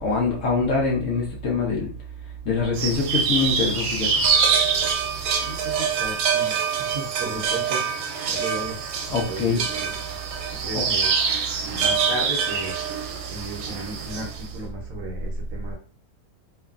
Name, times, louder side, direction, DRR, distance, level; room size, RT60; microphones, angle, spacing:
voice 1, 0.0-1.9 2.4-4.2 4.8-4.9 5.5-5.6 9.1-9.6 10.7-10.8, left 4 dB, 60° left, -2 dB, 0.9 m, -24 dB
sound 1, 2.7-14.4, right 6 dB, 90° right, 1.2 m, -25 dB
voice 2, 5.3-8.8 9.3-9.9 10.6-11.1 11.6-12.7 13.3-15.8, right 1 dB, 60° right, -1 dB, 1.0 m, -35 dB
3.1 x 2.2 x 2.4 m, 0.40 s
omnidirectional pair, 1.7 m